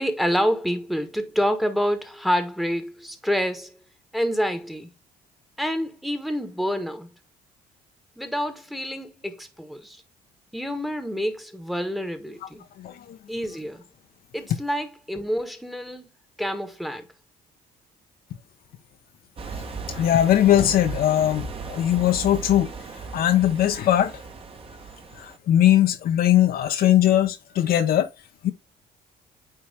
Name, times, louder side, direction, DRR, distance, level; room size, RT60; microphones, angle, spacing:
voice 1, 0.0-3.8 4.1-4.9 5.6-7.1 8.2-10.0 10.5-12.6 13.3-13.8 14.3-16.1 16.4-17.1, equal, ahead, 1.2 m, -27 dB
voice 2, 12.8-13.2 19.9-22.7 23.1-24.1 25.2-28.1 28.4-28.5, left 12 dB, 60° left, 0.9 m, -20 dB
sound 1, 19.4-25.4, right 4 dB, 35° right, 1.2 m, -37 dB
9.1 x 3.1 x 3.4 m
cardioid pair, 110°, 17 cm